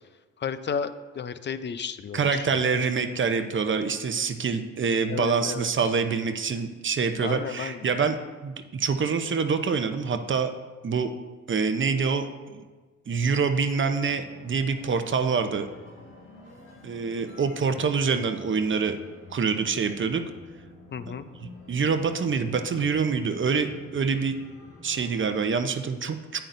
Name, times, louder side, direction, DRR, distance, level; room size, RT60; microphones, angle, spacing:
voice 1, 0.4-2.6 5.1-5.7 7.2-7.8 20.9-21.3, left 6 dB, 35° left, 13 dB, 0.6 m, -33 dB
voice 2, 2.1-8.2 8.4-10.5 10.8-11.1 11.5-12.6 13.1-15.7 16.8-19.0 19.3-20.2 21.4-24.4 24.8-26.4, right 5 dB, 40° right, 7 dB, 0.8 m, -26 dB
sound 1, 14.1-25.4, left 2 dB, 80° left, 2.6 m, -48 dB
10.5 x 9.0 x 2.7 m, 1.3 s
supercardioid pair, 65°, 31 cm